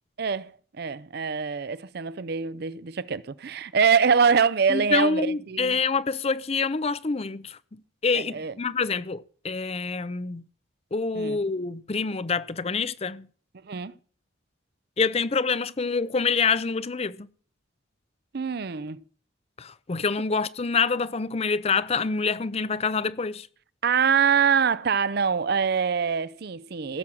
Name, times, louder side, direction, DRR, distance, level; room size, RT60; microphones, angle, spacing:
voice 1, 0.2-0.5 0.8-5.8 8.1-8.5 11.1-11.4 13.6-13.9 18.3-19.0 23.8-27.0, right 6 dB, 55° right, 0.5 m, -24 dB
voice 2, 4.7-10.4 10.9-13.3 15.0-17.3 19.6-23.5, left 4 dB, 30° left, 0.5 m, -26 dB
16.0 x 7.3 x 6.2 m
head